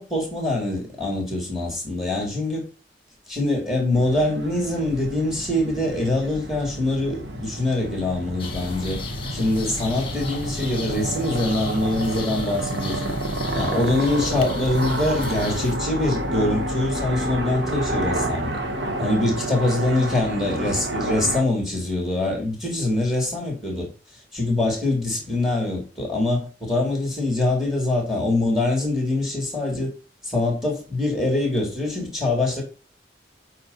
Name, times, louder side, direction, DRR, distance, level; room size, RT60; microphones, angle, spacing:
voice 1, 0.0-2.6 3.3-9.0 9.3-13.1 13.5-18.6 19.0-23.9 24.3-29.9 30.2-32.6, left 2 dB, ahead, 3.4 m, -24 dB
sound 1, 3.9-21.4, right 1 dB, 70° right, 1.4 m, -29 dB
sound 2, 8.4-15.8, left 3 dB, 30° left, 1.4 m, -36 dB
8.6 x 4.8 x 4.1 m
head